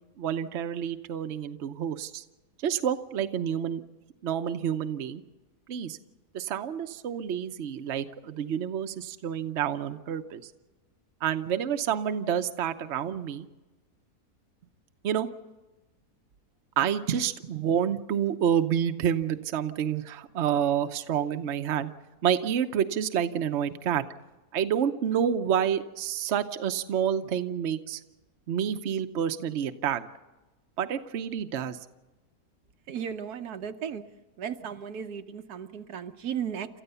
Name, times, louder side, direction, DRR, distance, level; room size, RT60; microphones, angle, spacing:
voice 1, 0.2-2.2 2.6-3.8 4.2-5.2 5.7-6.0 6.3-10.5 11.2-13.5 15.0-15.3 16.8-21.9 22.2-24.0 24.5-28.0 28.5-30.1 30.8-31.8, right 9 dB, 55° right, 8 dB, 1.0 m, -28 dB
voice 2, 32.9-34.0 34.4-36.7, right 8 dB, 80° right, 8 dB, 1.4 m, -35 dB
28.5 x 14.0 x 6.9 m, 1.1 s
omnidirectional pair, 1.7 m